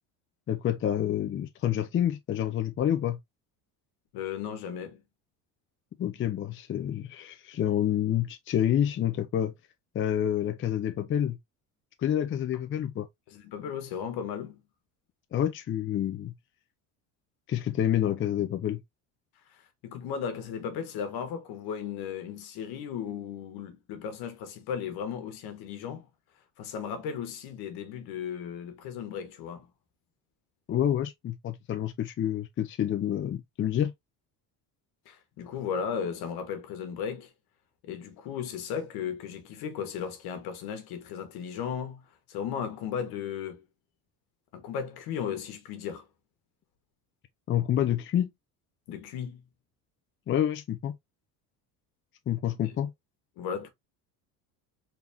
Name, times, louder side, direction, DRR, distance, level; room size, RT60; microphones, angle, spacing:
voice 1, 0.5-3.2 6.0-9.5 9.9-11.4 12.0-13.1 15.3-16.3 17.5-18.8 30.7-33.9 47.5-48.3 50.3-50.9 52.3-52.9, left 10 dB, 30° left, 0.5 m, -28 dB
voice 2, 4.1-5.0 13.3-14.6 19.5-26.1 26.6-29.7 35.0-37.3 37.8-43.6 44.5-46.1 48.9-49.4 52.6-52.7 53.4-53.7, left 7 dB, 70° left, 1.4 m, -36 dB
4.0 x 3.4 x 2.7 m
cardioid pair, 115°, 39 cm